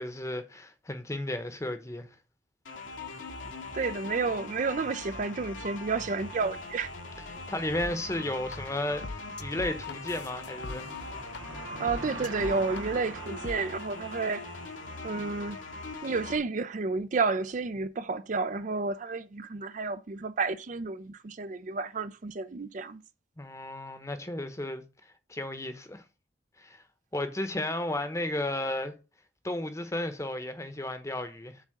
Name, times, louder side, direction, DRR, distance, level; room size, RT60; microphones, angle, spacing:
voice 1, 0.0-2.1 7.5-10.8 23.4-26.0 26.6-26.8 27.1-28.9 29.4-31.6, left 1 dB, 15° left, 0.9 m, -34 dB
sound 1, 2.7-16.4, left 3 dB, 85° left, 1.7 m, -41 dB
voice 2, 3.7-6.9 11.8-14.5 15.0-15.6 16.0-23.0, right 4 dB, 40° right, 0.4 m, -31 dB
sound 2, 7.8-7.9 8.5-8.6 9.0-11.4 11.7-12.8 13.4-13.6, left 3 dB, 65° left, 0.5 m, -41 dB
Car passing by / Engine, 9.1-15.8, right 4 dB, 80° right, 0.8 m, -45 dB
7.3 x 3.7 x 6.5 m
head